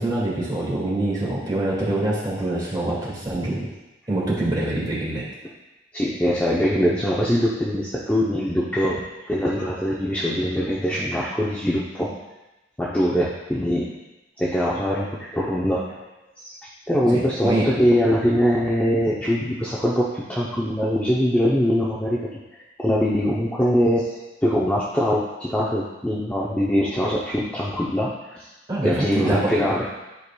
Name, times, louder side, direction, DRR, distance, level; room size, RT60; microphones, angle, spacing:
voice 1, 0.0-3.7 4.1-5.2 17.1-17.7 28.7-29.6, right 1 dB, 20° right, -7 dB, 2.1 m, -25 dB
voice 2, 5.9-9.0 9.3-12.2 12.8-13.9 14.4-15.8 16.4-22.4 22.8-28.5 28.8-29.9, equal, 10° left, -6 dB, 0.6 m, -22 dB
11.0 x 4.8 x 2.3 m, 1.0 s
head